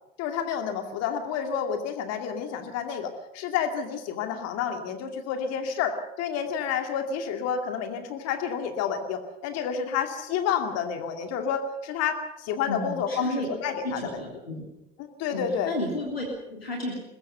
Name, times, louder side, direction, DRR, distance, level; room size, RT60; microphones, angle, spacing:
voice 1, 0.2-14.2 15.0-15.7, left 7 dB, 60° left, 5 dB, 2.5 m, -30 dB
voice 2, 12.7-13.5 13.8-14.7 15.3-17.0, left 1 dB, 90° left, 0 dB, 3.1 m, -32 dB
22.0 x 20.5 x 6.9 m, 0.95 s
figure-of-eight pair, 55°, 29 cm